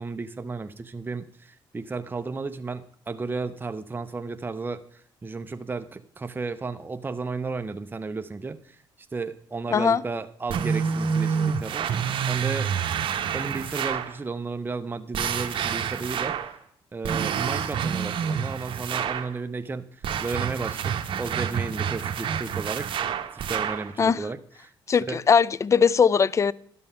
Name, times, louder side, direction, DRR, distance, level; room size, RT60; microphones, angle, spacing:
voice 1, 0.0-4.8 5.2-8.6 9.1-11.9 12.3-12.7 13.3-16.4 16.9-19.9 20.2-22.9 23.3-24.7 25.0-25.2, right 4 dB, 20° right, 0.6 m, -33 dB
voice 2, 9.7-10.0 24.0-24.3 24.9-26.5, left 6 dB, 30° left, 0.3 m, -20 dB
sound 1, 10.5-14.2 15.1-16.6 17.0-19.3 20.0-23.9, right 7 dB, 65° right, 0.8 m, -28 dB
12.0 x 5.5 x 5.6 m
supercardioid pair, 75°, 10 cm